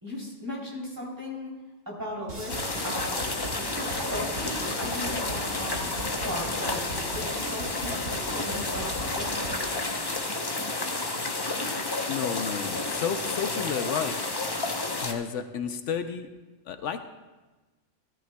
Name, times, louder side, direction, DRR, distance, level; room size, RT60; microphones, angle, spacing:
voice 1, 0.0-1.5 1.8-3.2 3.5-5.9 6.2-9.5, left 1 dB, 15° right, -4 dB, 3.2 m, -37 dB
sound 1, 2.3-9.7, right 1 dB, 80° right, 2.5 m, -38 dB
sound 2, 2.5-15.1, left 2 dB, 25° left, 0.6 m, -31 dB
voice 2, 12.1-14.2 15.0-16.3 16.7-17.0, left 7 dB, 80° left, 8 dB, 1.0 m, -31 dB
16.0 x 13.0 x 2.2 m, 1.2 s
omnidirectional pair, 1.2 m